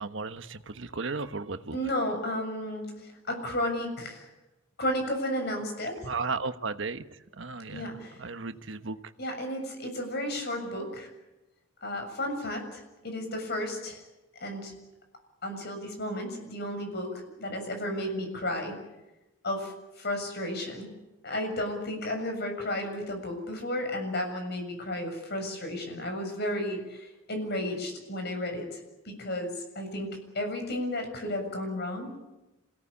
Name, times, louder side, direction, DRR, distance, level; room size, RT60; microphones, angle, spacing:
voice 1, 0.0-1.8 6.0-9.0, right 4 dB, 70° right, 9 dB, 1.2 m, -35 dB
voice 2, 1.7-4.3 4.8-6.1 7.7-8.2 9.2-11.1 11.8-14.0 14.4-14.7 15.4-18.8 19.4-20.9 21.2-28.8 29.1-32.1, left 1 dB, 55° left, 5 dB, 7.1 m, -33 dB
27.5 x 17.5 x 8.6 m, 1.0 s
head